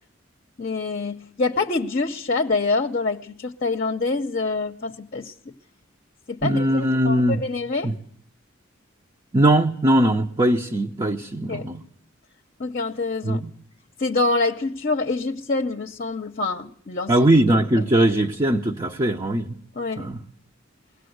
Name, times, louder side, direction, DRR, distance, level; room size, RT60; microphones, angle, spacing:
voice 1, 0.6-5.3 6.3-7.9 11.5-11.7 12.6-13.4 14.0-17.2 17.8-17.9 19.7-20.1, left 3 dB, 45° left, 0.8 m, -26 dB
voice 2, 6.4-7.4 7.8-7.9 9.3-11.8 13.2-13.5 17.1-19.5 20.0-20.2, right 1 dB, 25° right, 0.8 m, -20 dB
22.5 x 17.5 x 7.9 m
head